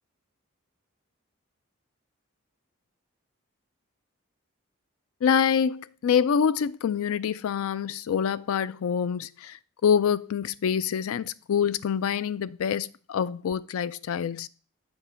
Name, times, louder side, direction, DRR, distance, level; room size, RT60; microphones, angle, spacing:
voice 1, 5.2-14.5, left 7 dB, 85° left, 0.4 m, -26 dB
7.1 x 3.8 x 5.6 m
head